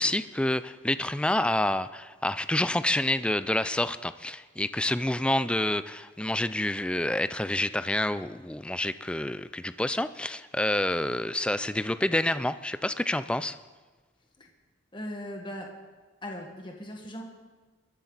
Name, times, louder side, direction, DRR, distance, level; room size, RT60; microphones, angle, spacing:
voice 1, 0.0-13.6, left 1 dB, 5° left, 13 dB, 0.4 m, -28 dB
voice 2, 14.9-15.7 16.2-17.2, left 1 dB, 25° left, 1 dB, 1.7 m, -38 dB
20.0 x 13.0 x 4.0 m, 1.3 s
head